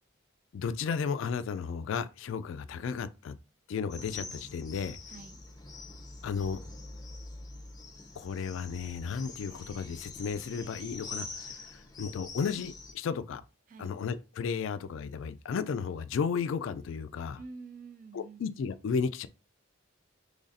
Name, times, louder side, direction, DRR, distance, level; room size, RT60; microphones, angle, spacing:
voice 1, 0.5-3.3 3.7-5.0 6.2-6.6 8.2-13.4 13.8-17.4 18.1-19.3, left 6 dB, 75° left, 0.3 m, -34 dB
sound 1, 3.9-12.9, left 3 dB, 20° left, 0.6 m, -45 dB
voice 2, 5.1-5.4 13.7-14.0 17.4-18.4, right 4 dB, 40° right, 0.3 m, -47 dB
4.0 x 3.2 x 2.5 m
head